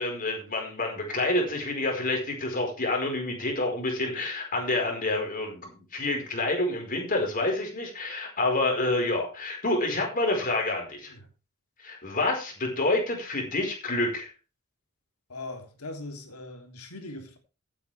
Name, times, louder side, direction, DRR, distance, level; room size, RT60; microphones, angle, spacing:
voice 1, 0.0-11.1 11.8-14.3, left 2 dB, 40° left, 4.9 m, -28 dB
voice 2, 15.3-17.4, left 2 dB, 85° left, 3.3 m, -40 dB
15.5 x 9.0 x 3.5 m
head